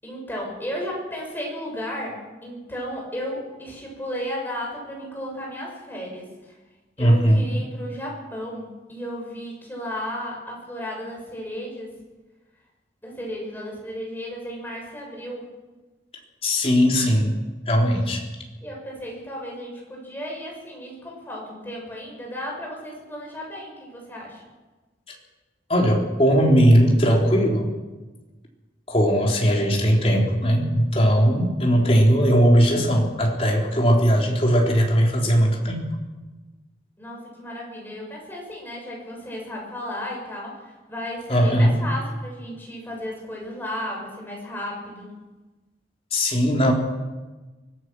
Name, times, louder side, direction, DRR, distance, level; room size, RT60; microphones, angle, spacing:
voice 1, 0.0-6.5 7.0-11.9 13.0-15.5 18.6-24.4 37.0-45.2, equal, 10° left, -2 dB, 7.2 m, -34 dB
voice 2, 7.0-7.4 16.4-17.3 17.7-18.2 25.7-27.7 28.9-35.9 41.3-41.8 46.1-46.7, equal, 35° left, -1 dB, 3.9 m, -19 dB
24.0 x 17.0 x 6.3 m, 1.2 s
head